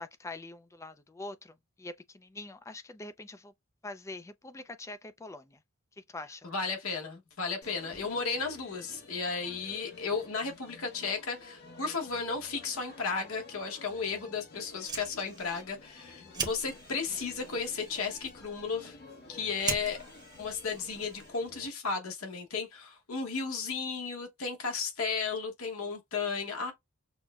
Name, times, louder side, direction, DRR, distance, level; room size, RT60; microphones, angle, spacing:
voice 1, 0.0-3.5 3.8-5.6 6.0-6.5, left 2 dB, 15° left, 0.3 m, -44 dB
voice 2, 6.4-19.0 19.3-20.0 20.4-26.7, left 4 dB, 75° left, 1.0 m, -34 dB
sound 1, 7.6-21.7, left 3 dB, 50° left, 0.9 m, -52 dB
Fire, 14.6-21.6, right 5 dB, 20° right, 0.9 m, -42 dB
6.1 x 2.1 x 2.3 m
head